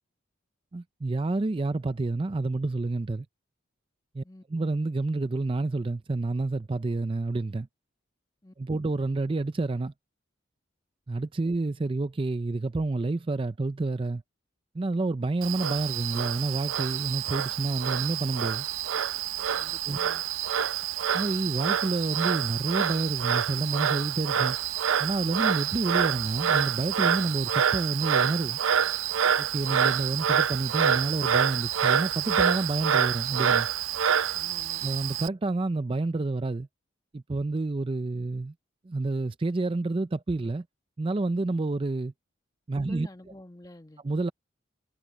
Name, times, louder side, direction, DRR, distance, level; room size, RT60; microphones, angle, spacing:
voice 1, 0.7-3.3 4.1-4.2 4.5-7.7 8.6-9.9 11.1-14.2 14.7-18.7 19.9-20.0 21.1-24.6 25.0-28.6 29.4-33.7 34.8-36.7 37.1-38.5 38.8-40.6 41.0-42.1 42.7-43.1 44.0-44.3, right 2 dB, 25° right, 0.4 m, -29 dB
Frog, 15.4-35.3, right 8 dB, 85° right, 0.5 m, -27 dB
voice 2, 19.6-20.2 34.3-34.8 42.8-44.0, left 1 dB, 20° left, 1.3 m, -49 dB
head